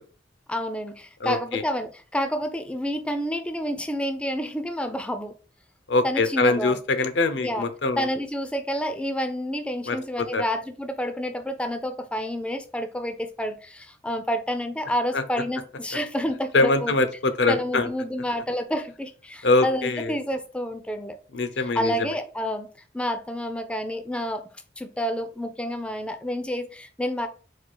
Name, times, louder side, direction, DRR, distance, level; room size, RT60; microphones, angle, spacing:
voice 1, 0.5-5.3 6.0-6.8 7.4-7.7 8.0-16.9 17.5-21.2 21.6-22.7 22.9-24.4 24.8-27.3, equal, 5° left, 8 dB, 0.3 m, -29 dB
voice 2, 1.2-1.6 5.9-8.1 9.9-10.0 10.3-10.4 15.1-15.2 16.5-17.9 19.4-20.1 21.3-21.9, left 3 dB, 80° left, 9 dB, 0.6 m, -23 dB
4.2 x 2.4 x 4.5 m, 0.38 s
head